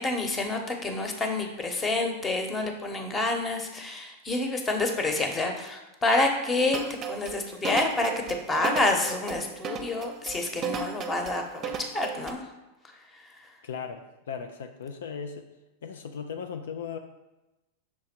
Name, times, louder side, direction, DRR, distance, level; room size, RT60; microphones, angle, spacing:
voice 1, 0.0-6.8 7.1-12.4, left 2 dB, 20° left, 4 dB, 1.0 m, -28 dB
sound 1, 6.7-12.3, right 5 dB, 35° right, 0.7 m, -34 dB
voice 2, 13.6-15.5 15.8-17.0, left 6 dB, 70° left, 6 dB, 0.4 m, -37 dB
6.0 x 3.7 x 4.4 m, 1.0 s
hypercardioid pair, 95°, 0 cm